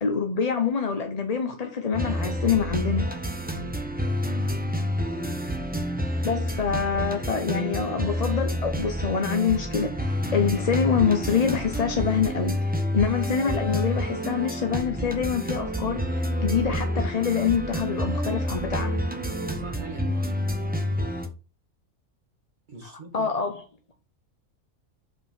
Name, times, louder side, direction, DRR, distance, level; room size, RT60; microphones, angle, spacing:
voice 1, 0.0-3.1 6.2-12.6 12.9-16.0 16.4-19.0 22.8-23.6, left 6 dB, 35° left, 0.7 m, -26 dB
sound 1, 1.9-21.3, equal, 10° right, 0.9 m, -28 dB
voice 2, 19.4-20.4 20.7-21.2 22.7-23.3, right 3 dB, 35° right, 2.0 m, -41 dB
5.4 x 4.9 x 6.1 m
omnidirectional pair, 1.4 m